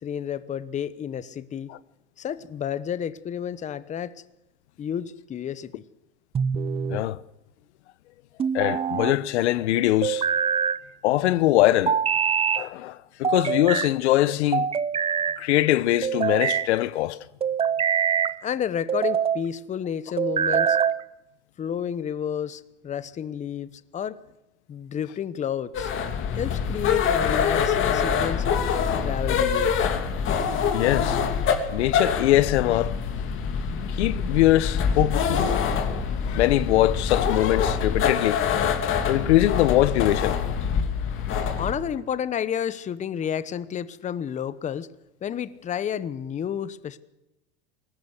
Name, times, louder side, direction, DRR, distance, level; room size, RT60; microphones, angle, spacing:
voice 1, 0.0-1.7 2.2-4.1 4.8-5.8 18.4-20.8 21.6-24.2 24.7-25.9 26.4-28.6 29.0-29.9 41.6-44.9 45.2-47.0, left 8 dB, 20° left, 0.9 m, -30 dB
sound 1, 6.3-7.0 8.4-9.2 10.0-10.8 11.9-12.6 13.2-13.9 14.5-15.4 16.0-16.7 17.4-18.4 18.9-19.4 20.2-21.0, right 7 dB, 15° right, 0.7 m, -24 dB
voice 2, 6.9-7.2 8.5-10.2 11.0-12.0 12.5-14.7 15.4-17.2 30.7-31.2 31.7-33.0 33.9-35.7 36.2-38.4 39.1-40.4, left 15 dB, 70° left, 1.0 m, -22 dB
sound 2, 25.7-41.7, left 6 dB, 35° left, 2.8 m, -25 dB
22.0 x 19.0 x 8.1 m
hypercardioid pair, 120°, 35 cm